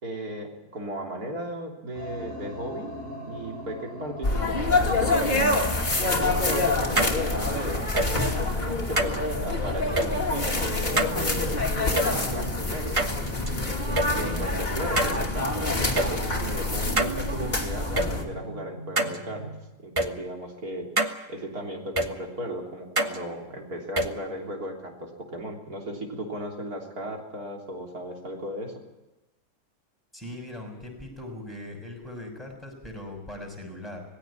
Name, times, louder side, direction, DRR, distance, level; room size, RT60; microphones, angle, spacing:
voice 1, 0.0-3.0 3.2-5.5 6.2-11.6 11.9-13.0 14.1-19.4 19.8-20.9 21.3-28.7, right 1 dB, 60° right, 1 dB, 3.8 m, -36 dB
sound 1, 1.9-19.6, right 1 dB, 45° right, 6.1 m, -41 dB
sound 2, 4.2-18.2, left 2 dB, 25° left, 2.8 m, -26 dB
sound 3, 7.0-7.1 8.0-8.1 9.0-9.2 10.0-10.1 11.0-11.1 12.0-12.1 13.0-13.5 14.0-14.1 15.0-15.2 16.0-16.1 17.0-17.1 18.0-18.1 19.0-19.2 20.0-20.1 21.0-21.1 22.0-22.1 23.0-23.2 24.0-24.1, right 2 dB, 20° right, 1.1 m, -24 dB
voice 2, 30.1-34.0, left 1 dB, ahead, 1 dB, 6.5 m, -40 dB
19.0 x 16.5 x 9.8 m, 1.0 s
omnidirectional pair, 1.8 m